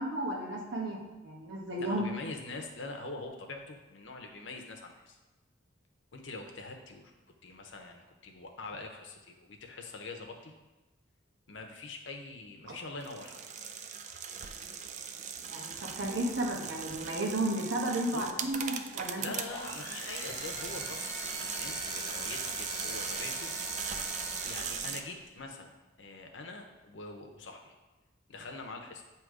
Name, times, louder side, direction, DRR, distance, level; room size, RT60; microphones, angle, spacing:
voice 1, 0.0-2.1 15.5-19.2, right 1 dB, 65° right, -1 dB, 1.2 m, -33 dB
voice 2, 1.8-5.2 6.1-7.1 7.4-10.5 11.5-13.4 18.1-18.4 19.2-23.5 24.4-25.7 26.0-27.7 28.3-29.0, left 3 dB, 70° left, 3 dB, 0.8 m, -44 dB
sound 1, 13.0-25.0, right 7 dB, 40° right, 0.4 m, -39 dB
sound 2, 19.4-25.2, left 1 dB, 15° left, 1.1 m, -42 dB
7.6 x 3.0 x 4.7 m, 1.1 s
head